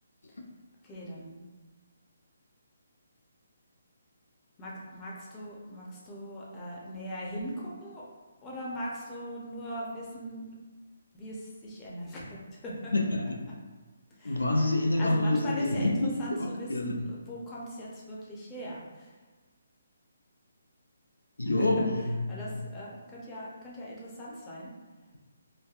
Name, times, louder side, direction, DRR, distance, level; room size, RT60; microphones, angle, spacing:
voice 1, 0.8-1.4 4.6-8.1 8.4-10.5 11.1-12.9 14.2-14.4 15.0-19.1 21.6-21.9 22.3-24.7, equal, 20° left, -5 dB, 0.6 m, -40 dB
voice 2, 12.9-13.4 14.2-17.1 21.4-22.6, left 2 dB, 90° left, 2 dB, 0.5 m, -27 dB
3.2 x 2.2 x 2.4 m, 1.3 s
figure-of-eight pair, 150°, 0 cm